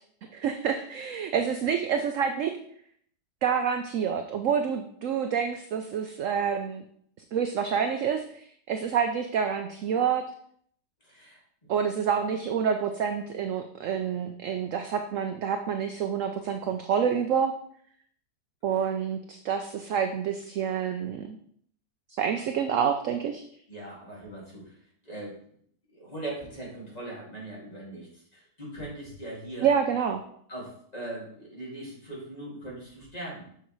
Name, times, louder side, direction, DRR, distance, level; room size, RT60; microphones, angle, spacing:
voice 1, 0.3-2.5 3.4-6.8 7.3-10.2 11.7-17.5 18.6-21.4 22.1-23.4 29.6-30.2, right 7 dB, 75° right, 6 dB, 0.7 m, -28 dB
voice 2, 11.0-11.7 18.7-18.9 23.7-25.4 25.9-29.7 30.5-33.5, right 1 dB, 20° left, -5 dB, 2.4 m, -40 dB
7.1 x 6.6 x 3.1 m, 0.64 s
omnidirectional pair, 1.9 m